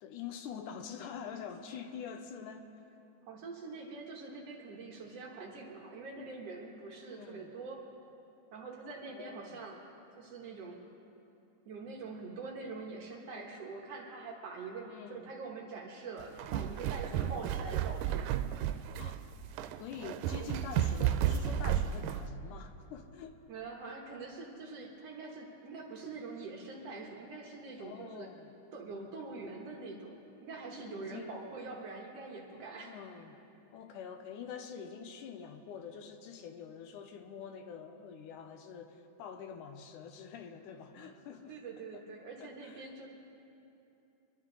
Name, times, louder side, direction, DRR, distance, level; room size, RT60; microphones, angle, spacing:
voice 1, 0.0-2.7 7.1-7.5 9.1-9.6 14.9-15.3 17.1-17.4 19.0-19.2 19.8-23.4 27.8-28.5 30.8-31.5 32.8-33.4 33.7-42.0 42.4-42.9, left 7 dB, 80° left, 6 dB, 2.3 m, -46 dB
voice 2, 3.3-7.8 8.5-9.8 10.2-10.8 11.7-18.3 23.5-28.3 28.7-33.0 41.0-41.1 41.5-43.1, right 3 dB, 60° right, 0 dB, 2.0 m, -44 dB
sound 1, 16.2-22.3, right 10 dB, 90° right, 2.2 m, -33 dB
24.5 x 12.0 x 3.9 m, 2.9 s
omnidirectional pair, 3.7 m